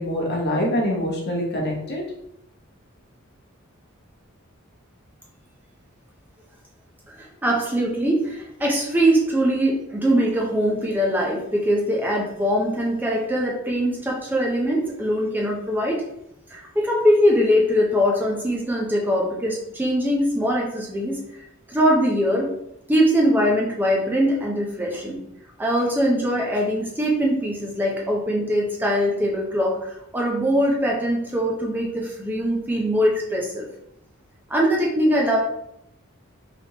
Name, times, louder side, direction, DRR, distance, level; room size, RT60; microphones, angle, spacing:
voice 1, 0.0-2.0, equal, 55° left, -1 dB, 0.9 m, -24 dB
voice 2, 7.2-16.0 16.5-21.2 21.7-22.5 22.9-25.2 25.6-33.7 34.5-35.4, equal, 10° right, -2 dB, 0.5 m, -22 dB
3.3 x 2.9 x 2.8 m, 0.78 s
head